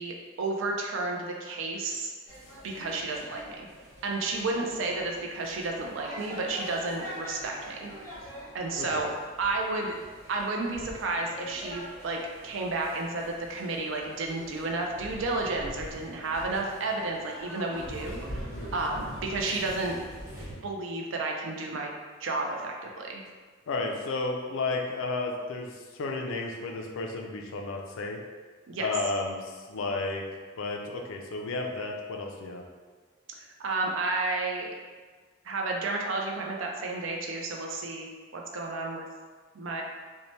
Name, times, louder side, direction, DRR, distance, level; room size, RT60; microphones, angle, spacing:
voice 1, 0.0-2.1 2.6-3.7 4.0-7.9 8.5-9.1 9.4-9.9 10.3-18.5 18.7-20.0 20.6-23.2 28.7-28.9 33.6-34.7 35.4-38.1 38.3-39.0 39.5-39.8, right 3 dB, 65° right, 1 dB, 0.4 m, -32 dB
sound 1, 2.3-20.5, equal, 15° right, 1.0 m, -44 dB
voice 2, 8.8-9.1 18.5-18.8 23.7-28.2 28.8-30.2 30.6-32.6, left 3 dB, 75° left, 2 dB, 0.4 m, -33 dB
2.7 x 2.1 x 3.1 m, 1.4 s
head